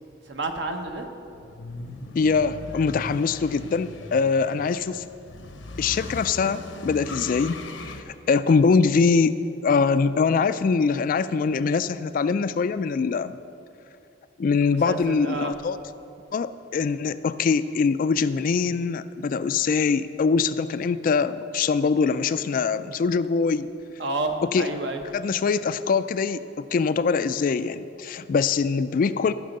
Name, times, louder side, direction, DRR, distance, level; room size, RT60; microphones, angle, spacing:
voice 1, 0.3-1.1 14.6-15.6 24.0-25.0, right 2 dB, 65° right, 4 dB, 1.0 m, -30 dB
sound 1, 1.3-8.0, left 2 dB, 90° left, 0.9 m, -39 dB
voice 2, 2.1-5.0 5.8-7.6 8.3-9.3 9.6-13.4 14.4-15.8 16.3-23.7 24.4-24.7 25.1-29.3, left 5 dB, 45° left, 13 dB, 0.3 m, -23 dB
14.0 x 6.1 x 6.6 m, 2.7 s
head